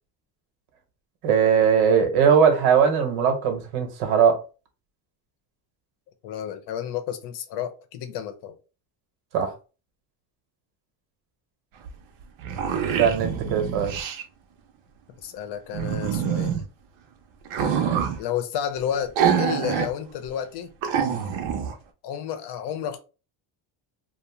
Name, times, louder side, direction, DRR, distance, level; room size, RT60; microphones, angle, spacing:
voice 1, 1.2-4.4 9.3-9.5 13.0-13.9 17.8-18.0, right 7 dB, 90° right, 1.0 m, -20 dB
voice 2, 6.2-8.5 15.2-16.6 18.2-20.7 22.0-23.0, left 9 dB, 60° left, 0.6 m, -31 dB
sound 1, 11.9-12.0 12.2-14.2 15.7-16.6 17.5-18.2 19.2-19.9 20.3-20.4 20.8-21.7, right 8 dB, 70° right, 0.6 m, -25 dB
2.7 x 2.1 x 3.0 m
cardioid pair, 165°, 47 cm